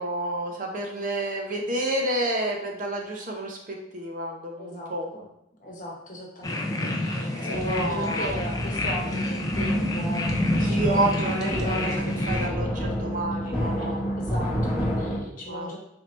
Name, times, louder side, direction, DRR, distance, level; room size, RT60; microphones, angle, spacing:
voice 1, 0.0-5.1 7.2-8.4 10.6-14.0 15.5-15.8, right 1 dB, 45° right, 1 dB, 0.6 m, -30 dB
voice 2, 4.6-5.3 5.6-12.7 13.4-15.8, equal, 45° left, -2 dB, 1.0 m, -37 dB
sound 1, 6.4-12.5, left 1 dB, 20° left, 0.4 m, -28 dB
sound 2, 7.5-15.2, equal, 5° right, 1.0 m, -30 dB
4.4 x 2.7 x 3.2 m, 0.81 s
head